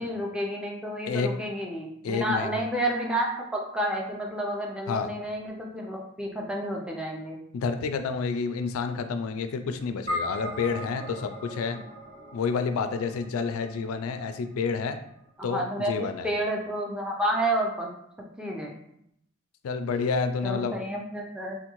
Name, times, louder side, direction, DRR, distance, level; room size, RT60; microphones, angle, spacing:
voice 1, 0.0-7.4 15.4-15.9 16.2-17.9 18.4-18.7 20.4-21.6, right 1 dB, 5° right, -1 dB, 0.4 m, -30 dB
voice 2, 2.0-2.6 4.9-5.1 7.5-11.8 12.3-15.0 15.4-16.3 19.6-20.8, left 5 dB, 75° left, 8 dB, 0.3 m, -29 dB
sound 1, 10.1-14.6, left 1 dB, 30° right, 1.1 m, -38 dB
3.5 x 2.2 x 2.9 m, 0.75 s
head